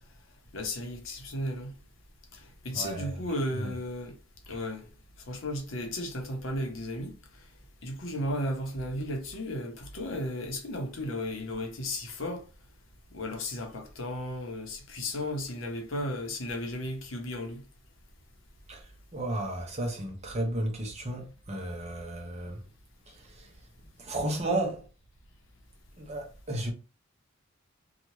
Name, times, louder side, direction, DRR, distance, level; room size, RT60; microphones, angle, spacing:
voice 1, 0.5-1.7 2.3-4.1 4.5-4.9 5.3-7.1 7.8-12.4 13.1-17.6, left 1 dB, 70° left, 0.8 m, -34 dB
voice 2, 2.7-3.2 3.5-3.7 18.7-22.6 23.1-23.5 24.0-24.9 26.0-26.7, right 1 dB, 35° right, 0.8 m, -33 dB
2.8 x 2.3 x 3.0 m
head